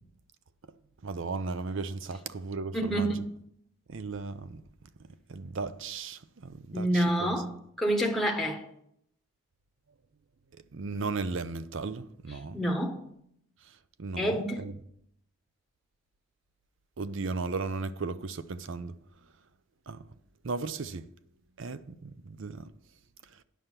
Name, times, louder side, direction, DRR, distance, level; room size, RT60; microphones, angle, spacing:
voice 1, 1.0-3.1 3.9-4.6 5.3-7.3 10.7-12.6 14.0-14.7 17.0-18.9 19.9-20.0 20.4-21.1 21.6-22.6, right 4 dB, 65° right, 0.6 m, -36 dB
voice 2, 2.7-3.3 6.7-8.6 12.5-13.0 14.2-14.7, right 1 dB, ahead, 1.0 m, -28 dB
9.3 x 6.6 x 5.8 m
head